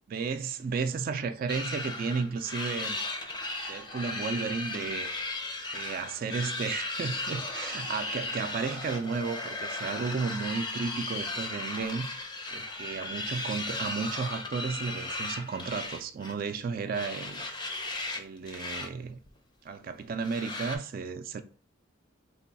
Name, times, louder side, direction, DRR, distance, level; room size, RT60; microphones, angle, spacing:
voice 1, 0.1-3.0 3.7-5.4 5.7-12.1 12.5-17.4 18.1-19.2 19.6-21.4, right 5 dB, 50° right, 0.3 m, -33 dB
sound 1, 1.5-16.5 16.9-18.2 18.5-18.9 19.2-19.3 20.2-20.8, left 2 dB, 20° left, 0.5 m, -36 dB
3.4 x 2.2 x 3.9 m
head